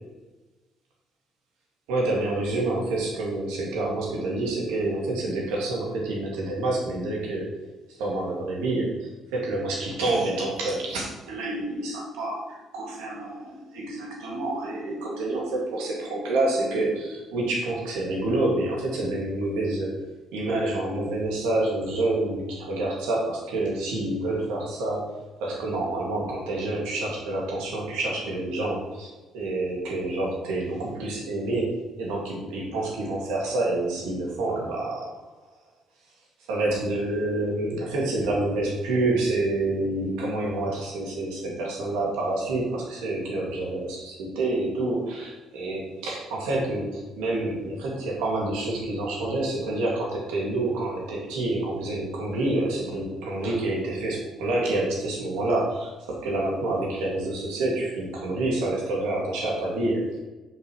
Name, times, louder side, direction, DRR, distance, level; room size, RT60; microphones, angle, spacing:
voice 1, 1.9-7.7 8.0-20.0 20.3-35.1 36.5-60.1, right 2 dB, 80° right, -2 dB, 2.4 m, -28 dB
5.3 x 5.1 x 6.3 m, 1.2 s
supercardioid pair, 65°, 0 cm